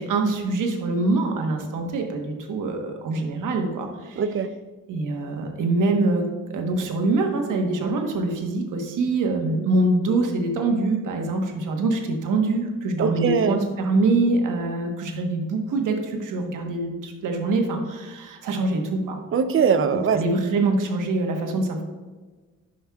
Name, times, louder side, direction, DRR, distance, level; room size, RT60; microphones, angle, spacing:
voice 1, 0.0-4.3 4.9-19.2 20.1-21.8, right 2 dB, 75° right, 3 dB, 1.2 m, -24 dB
voice 2, 4.2-4.5 13.0-13.6 19.3-20.2, right 6 dB, 45° right, 11 dB, 0.5 m, -21 dB
11.0 x 5.5 x 2.3 m, 1.3 s
cardioid pair, 130°, 31 cm